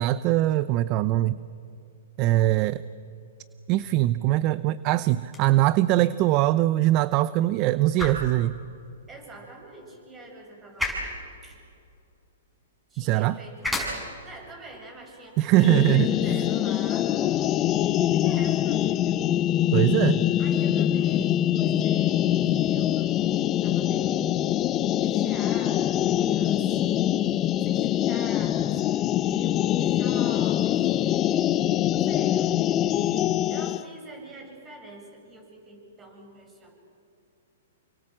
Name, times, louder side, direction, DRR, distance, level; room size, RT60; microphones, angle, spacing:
voice 1, 0.0-1.4 2.2-2.8 3.7-8.6 13.0-13.4 15.4-16.1 19.7-20.2, right 15 dB, 40° right, 16 dB, 0.6 m, -22 dB
sound 1, 5.2-17.2, left 1 dB, ahead, 6.4 m, -38 dB
voice 2, 9.1-11.1 11.4-11.6 12.9-13.7 14.2-17.6 18.1-19.3 20.4-24.5 25.0-26.8 27.6-28.8 29.2-31.5 31.9-32.6 33.5-36.8, right 2 dB, 15° right, 2 dB, 7.9 m, -46 dB
sound 2, 15.6-33.8, left 12 dB, 30° left, 0.7 m, -24 dB
29.0 x 25.0 x 7.5 m, 2.5 s
hypercardioid pair, 130°, 0 cm